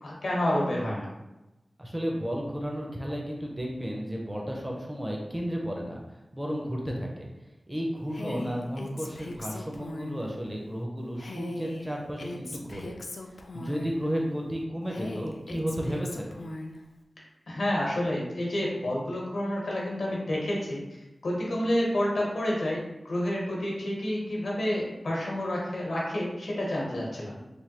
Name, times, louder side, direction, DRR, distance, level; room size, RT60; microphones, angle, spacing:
voice 1, 0.0-1.1 17.5-20.8 21.2-27.4, left 1 dB, 85° left, -4 dB, 0.9 m, -29 dB
voice 2, 1.8-6.0 6.3-7.3 7.7-13.0 13.5-16.3, equal, 15° right, -1 dB, 0.5 m, -33 dB
Female speech woman speaking, 8.1-10.3 11.2-14.1 14.9-16.8, left 2 dB, 70° left, 0.3 m, -39 dB
3.2 x 2.2 x 2.8 m, 1.0 s
wide cardioid pair, 90°, 0 cm